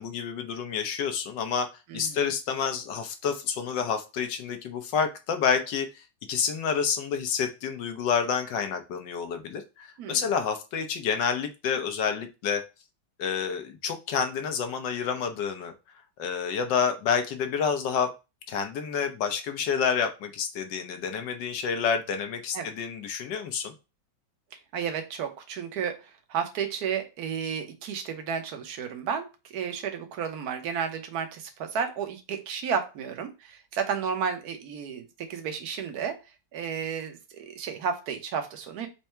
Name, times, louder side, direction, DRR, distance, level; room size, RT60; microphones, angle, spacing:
voice 1, 0.0-1.7 1.9-12.6 13.2-15.7 16.2-18.1 18.5-23.7, left 6 dB, 70° left, 7 dB, 1.4 m, -29 dB
voice 2, 24.7-36.2 36.5-38.9, right 7 dB, 60° right, 6 dB, 1.3 m, -32 dB
4.6 x 2.7 x 4.3 m, 0.28 s
omnidirectional pair, 2.1 m